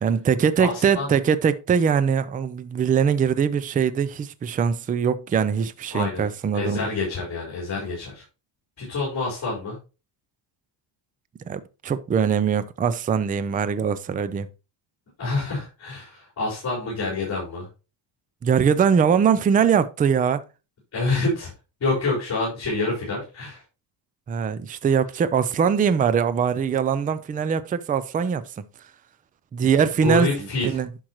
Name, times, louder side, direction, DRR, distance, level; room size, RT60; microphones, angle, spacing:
voice 1, 0.0-6.9 11.5-14.5 18.4-20.4 24.3-28.4 29.5-30.9, right 7 dB, 20° right, 0.4 m, -22 dB
voice 2, 0.7-1.1 5.9-6.2 6.5-8.2 8.8-9.8 15.2-17.7 20.9-21.5 21.8-23.6 29.6-29.7 30.0-30.7, left 3 dB, 35° left, 4.4 m, -27 dB
10.5 x 6.2 x 3.0 m
cardioid pair, 155°, 46 cm